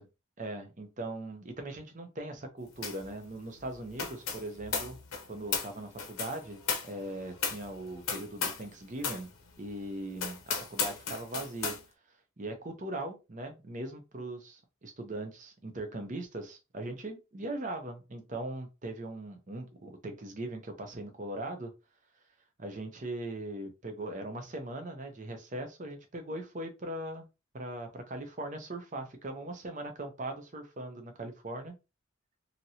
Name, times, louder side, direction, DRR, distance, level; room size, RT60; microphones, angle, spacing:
voice 1, 0.4-5.0 5.2-9.3 9.6-11.8 12.4-21.7 22.6-27.3 27.5-31.7, right 1 dB, 35° right, 5 dB, 0.7 m, -40 dB
sound 1, 2.8-3.1 3.4-8.7 9.0-9.3 9.7-9.8 10.2-11.8, left 6 dB, 80° left, 0.8 m, -35 dB
2.9 x 2.7 x 2.8 m, 0.27 s
head